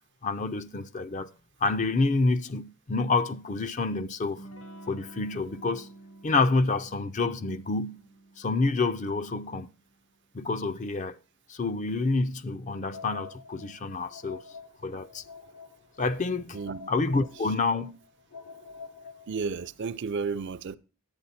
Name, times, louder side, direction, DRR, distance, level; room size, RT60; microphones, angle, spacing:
voice 1, 0.2-1.3 1.6-4.5 4.9-5.9 6.2-8.0 8.4-9.7 10.3-11.2 11.5-14.4 14.8-15.2 16.0-16.6 16.9-18.0, left 3 dB, 35° left, 0.4 m, -28 dB
Electric guitar / Strum, 4.4-9.7, right 2 dB, 60° left, 1.2 m, -50 dB
sound 1, 12.7-19.7, left 5 dB, 90° left, 1.3 m, -48 dB
voice 2, 16.5-16.9 19.3-20.8, right 5 dB, 50° right, 0.4 m, -32 dB
10.5 x 8.8 x 4.2 m
head